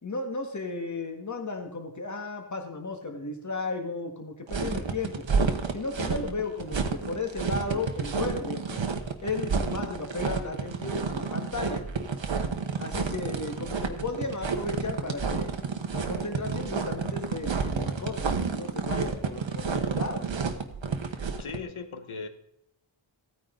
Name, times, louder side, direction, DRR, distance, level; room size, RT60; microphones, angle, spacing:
voice 1, 0.0-5.2 5.7-8.8 9.2-11.9 12.8-15.6 15.9-20.3, left 3 dB, 35° left, 4 dB, 1.8 m, -34 dB
sound 1, 4.5-21.6, right 5 dB, 65° right, 1.2 m, -30 dB
voice 2, 21.3-22.3, left 5 dB, 75° left, 8 dB, 1.2 m, -38 dB
15.0 x 9.3 x 3.8 m, 0.76 s
wide cardioid pair, 90°, 49 cm